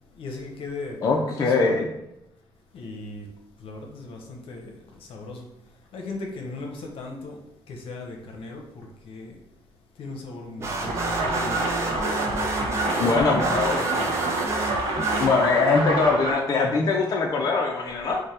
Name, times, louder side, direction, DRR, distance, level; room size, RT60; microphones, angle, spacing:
voice 1, 0.1-1.9 2.7-9.4 10.0-12.4 12.9-14.4, left 3 dB, 70° left, 2 dB, 0.7 m, -38 dB
voice 2, 1.0-1.9 13.0-13.8 15.2-18.2, left 4 dB, 40° left, -1 dB, 0.4 m, -22 dB
sound 1, 10.6-15.8, right 2 dB, 30° right, 0.6 m, -31 dB
sound 2, 10.9-16.3, right 2 dB, 60° right, 0.8 m, -27 dB
3.2 x 2.1 x 4.1 m, 0.86 s
cardioid pair, 135°, 10 cm